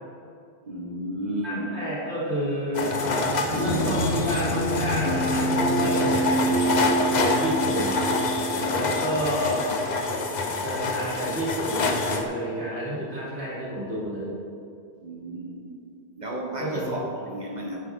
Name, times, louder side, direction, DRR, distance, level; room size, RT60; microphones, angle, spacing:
voice 1, 0.7-1.7 3.5-3.7 15.0-15.6 16.2-17.8, right 1 dB, 40° right, -1 dB, 1.5 m, -33 dB
voice 2, 1.4-8.1 8.7-9.8 10.4-14.3 16.6-16.9, equal, 85° right, -7 dB, 3.2 m, -30 dB
sound 1, 2.7-12.2, left 3 dB, 45° left, 0.8 m, -27 dB
sound 2, 3.5-10.1, right 1 dB, 70° left, 1.3 m, -27 dB
9.8 x 9.3 x 3.8 m, 2.5 s
omnidirectional pair, 1.1 m